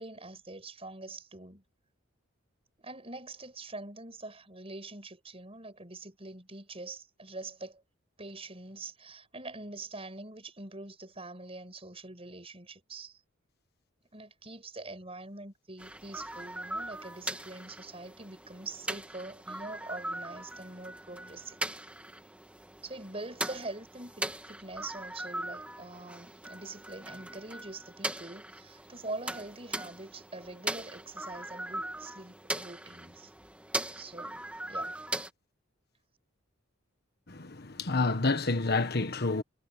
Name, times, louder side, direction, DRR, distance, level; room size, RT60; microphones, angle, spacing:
voice 1, 0.0-1.6 2.8-7.8 8.2-13.2 14.1-21.6 22.8-33.3 34.0-35.0, right 2 dB, 30° right, 6.5 m, -44 dB
sound 1, 15.8-35.3, right 1 dB, 5° right, 2.3 m, -40 dB
voice 2, 37.3-39.4, left 3 dB, 50° left, 1.5 m, -29 dB
head